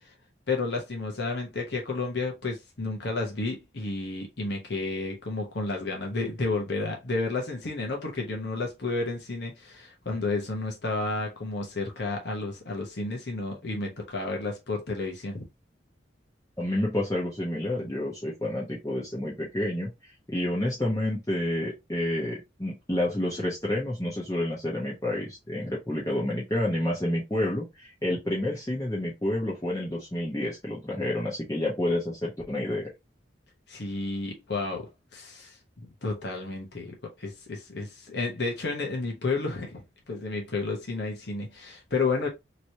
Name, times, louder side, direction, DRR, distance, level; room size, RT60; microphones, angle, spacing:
voice 1, 0.5-15.5 33.7-39.8 40.1-42.3, left 3 dB, 65° left, 1.0 m, -31 dB
voice 2, 16.6-19.9 20.3-32.9, left 1 dB, 15° left, 0.9 m, -29 dB
3.1 x 3.0 x 2.7 m
head